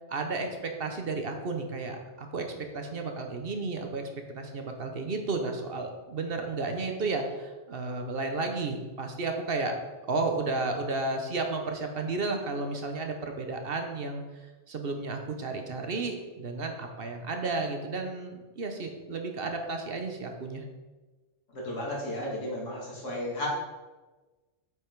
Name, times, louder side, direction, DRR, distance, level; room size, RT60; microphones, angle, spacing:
voice 1, 0.0-2.5 2.7-9.8 10.1-14.2 14.7-20.6, right 3 dB, 55° right, 4 dB, 1.1 m, -32 dB
voice 2, 21.5-23.5, left 1 dB, 90° left, -4 dB, 2.5 m, -34 dB
8.0 x 5.4 x 4.6 m, 1.2 s
omnidirectional pair, 1.2 m